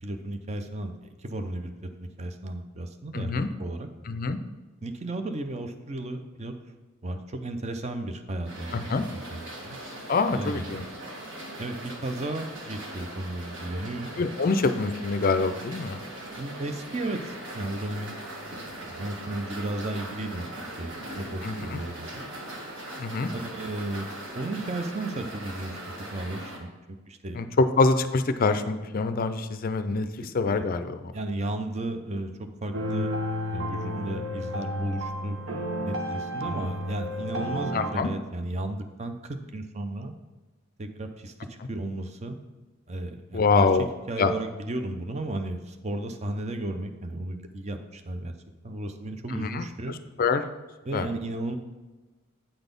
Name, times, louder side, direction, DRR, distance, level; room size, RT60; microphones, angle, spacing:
voice 1, 0.0-1.7 2.0-3.9 4.8-6.5 7.0-8.9 9.3-9.8 10.3-10.7 11.6-14.1 16.3-18.1 18.9-20.5 20.8-22.3 23.3-24.1 24.3-26.7 27.1-27.4 30.5-30.7 31.1-33.1 33.5-35.4 35.8-40.1 40.8-42.4 42.9-43.7 44.1-48.3 48.6-49.9 50.8-51.6, right 2 dB, 30° right, 7 dB, 0.5 m, -34 dB
voice 2, 3.1-3.5 4.1-4.4 8.7-9.0 10.1-10.9 14.2-16.0 21.4-21.8 23.0-23.3 27.3-30.1 30.3-31.1 37.7-38.1 43.3-43.9 44.2-44.3 49.3-50.4 50.9-51.1, left 4 dB, 40° left, 10 dB, 0.4 m, -25 dB
sound 1, 8.4-26.6, right 1 dB, 60° right, 1.4 m, -40 dB
sound 2, 32.7-37.9, equal, 80° right, 1.0 m, -31 dB
8.9 x 4.0 x 5.2 m, 1.2 s
head